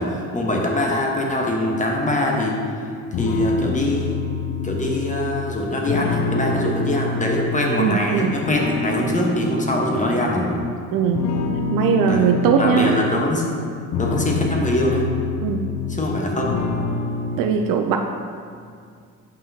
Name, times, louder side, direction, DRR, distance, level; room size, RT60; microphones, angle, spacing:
voice 1, 0.0-2.5 3.2-4.2 4.6-10.6 12.1-12.3 12.6-13.4 14.0-15.1 15.9-16.6, left 1 dB, 15° left, -1 dB, 1.2 m, -23 dB
sound 1, 3.1-8.0 8.4-10.7 11.1-13.3 13.7-16.2 16.5-17.4, left 4 dB, 40° left, 0.6 m, -26 dB
voice 2, 7.8-8.4 10.9-11.3 11.7-12.9 15.4-15.7 17.4-18.0, right 7 dB, 50° right, 3 dB, 0.5 m, -20 dB
7.5 x 5.4 x 2.8 m, 2.2 s
hypercardioid pair, 55°, 45 cm